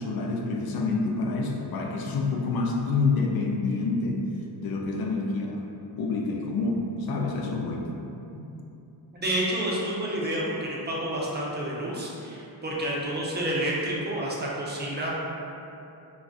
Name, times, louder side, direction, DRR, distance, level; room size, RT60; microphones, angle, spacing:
voice 1, 0.0-4.2 4.6-5.7 6.0-7.9 8.3-8.5, left 3 dB, 60° left, 0 dB, 0.5 m, -27 dB
voice 2, 9.1-15.1, right 1 dB, 25° right, -5 dB, 0.6 m, -29 dB
2.4 x 2.3 x 3.5 m, 2.8 s
cardioid pair, 85°, 42 cm